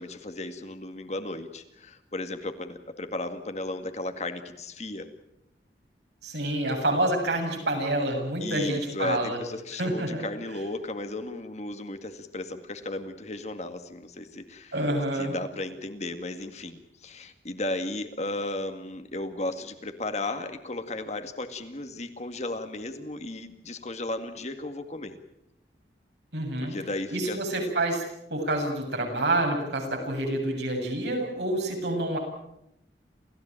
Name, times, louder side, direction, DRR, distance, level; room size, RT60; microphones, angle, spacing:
voice 1, 0.0-5.1 8.4-14.7 15.1-25.2 26.6-27.4, left 2 dB, 40° left, 8 dB, 2.0 m, -35 dB
voice 2, 6.2-9.4 9.8-10.2 14.7-15.4 26.3-26.8 27.1-28.0 28.3-32.2, right 1 dB, 75° right, 2 dB, 7.8 m, -28 dB
28.5 x 16.0 x 8.9 m, 0.81 s
head